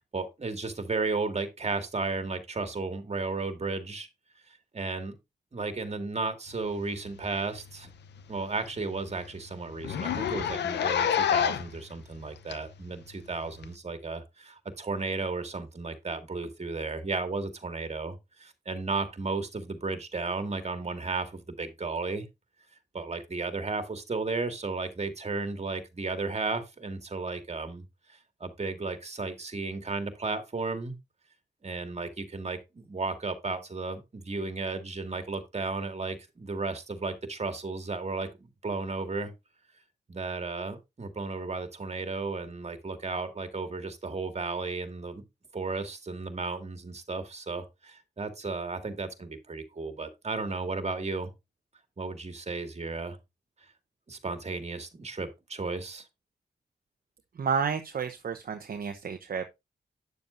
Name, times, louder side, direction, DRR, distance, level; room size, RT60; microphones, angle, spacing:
voice 1, 0.1-4.1 4.7-5.2 5.5-7.9 8.3-22.3 22.9-30.9 31.6-39.3 40.1-45.2 45.5-51.3 52.0-53.2 54.1-56.1, right 3 dB, 40° right, 2.0 m, -34 dB
Zipper (clothing), 7.2-7.4 7.7-7.8 8.2-8.3 8.6-8.7 9.0-9.1 9.8-11.8 12.5-12.6 13.6-13.7, left 9 dB, 85° left, 0.7 m, -28 dB
voice 2, 57.3-59.5, right 6 dB, 55° right, 0.9 m, -31 dB
9.4 x 7.1 x 2.5 m
cardioid pair, 55°, 17 cm